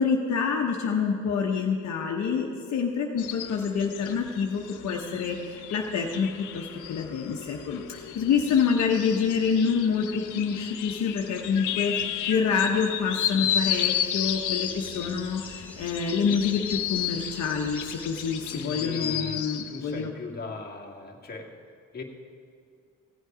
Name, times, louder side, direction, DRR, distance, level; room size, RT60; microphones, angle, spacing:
voice 1, 0.0-20.1, left 6 dB, 65° left, 0 dB, 1.1 m, -27 dB
sound 1, 3.2-19.8, left 10 dB, 85° left, 0.7 m, -33 dB
sound 2, 13.4-18.7, left 2 dB, 5° left, 1.7 m, -46 dB
voice 2, 18.5-22.0, left 4 dB, 30° left, 1 dB, 1.6 m, -38 dB
16.0 x 8.2 x 5.0 m, 2.4 s
cardioid pair, 90°, 30 cm